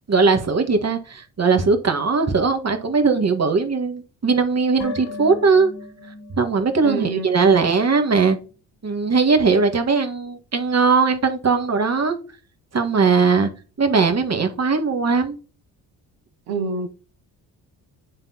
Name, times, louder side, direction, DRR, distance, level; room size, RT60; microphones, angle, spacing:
voice 1, 0.1-5.7 6.4-8.4 8.8-12.2 12.7-13.5 13.8-15.4, right 4 dB, 35° right, 1.6 m, -19 dB
sound 1, 4.8-8.1 8.4-8.5, left 3 dB, 55° left, 2.6 m, -38 dB
voice 2, 6.8-7.5 16.5-16.9, right 3 dB, 80° right, 1.2 m, -27 dB
9.7 x 3.7 x 2.9 m
hypercardioid pair, 45°, 47 cm